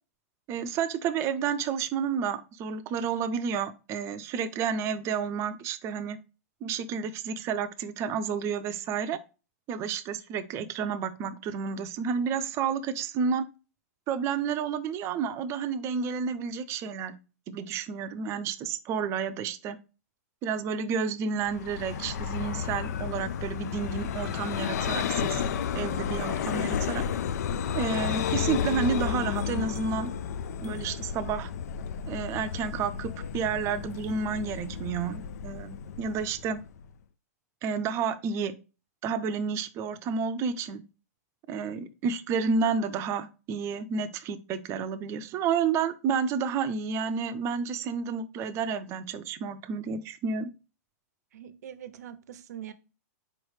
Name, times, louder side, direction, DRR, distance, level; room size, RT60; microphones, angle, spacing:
voice 1, 0.5-6.2 6.6-9.2 9.7-13.5 14.1-17.1 17.5-19.8 20.4-27.1 27.7-30.1 30.6-31.5 32.1-36.6 37.6-38.5 39.0-40.8 41.5-50.5, right 6 dB, 30° right, 0.5 m, -30 dB
Vehicle, 21.4-36.9, left 8 dB, 70° left, 0.4 m, -32 dB
voice 2, 51.3-52.7, right 10 dB, 75° right, 0.6 m, -43 dB
4.8 x 3.1 x 3.1 m
hypercardioid pair, 130°, 9 cm